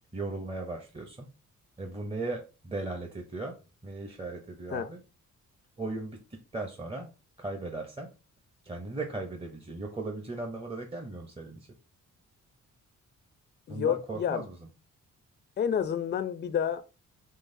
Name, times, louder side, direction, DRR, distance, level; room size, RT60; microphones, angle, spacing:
voice 1, 0.1-1.3 1.8-3.6 3.8-5.0 5.8-7.1 7.4-8.1 8.6-11.7 13.7-14.6, right 2 dB, 20° right, 0.7 m, -37 dB
voice 2, 13.7-14.4 15.6-16.8, left 8 dB, 35° left, 0.4 m, -29 dB
3.8 x 3.4 x 2.6 m
cardioid pair, 85°, 32 cm